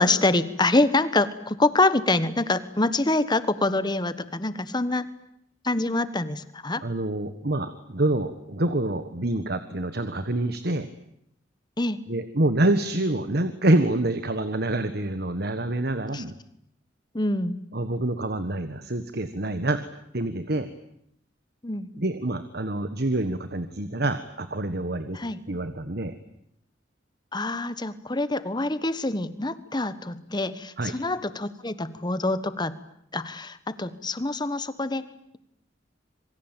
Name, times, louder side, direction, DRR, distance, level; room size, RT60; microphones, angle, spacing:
voice 1, 0.0-5.1 5.6-6.8 11.8-12.0 16.1-16.2 17.1-17.6 21.6-21.9 25.1-25.4 27.3-32.8 33.1-35.1, left 2 dB, 20° left, 14 dB, 1.3 m, -25 dB
voice 2, 6.8-10.9 12.1-16.3 17.7-19.8 20.1-20.7 22.0-25.2 25.5-26.1 30.8-30.9, right 1 dB, 55° right, 10 dB, 1.5 m, -26 dB
27.0 x 23.5 x 9.1 m, 0.73 s
head